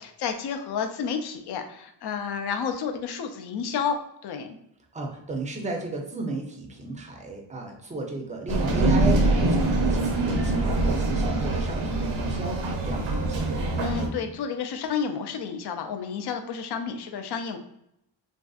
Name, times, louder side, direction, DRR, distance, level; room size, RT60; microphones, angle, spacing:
voice 1, 0.0-4.6 13.8-17.6, left 6 dB, 60° left, 6 dB, 0.5 m, -31 dB
voice 2, 4.9-13.7, right 2 dB, 15° right, 1 dB, 0.5 m, -34 dB
sound 1, 8.5-14.1, right 2 dB, 75° right, 0.7 m, -24 dB
3.3 x 2.6 x 2.3 m, 0.78 s
wide cardioid pair, 135°, 46 cm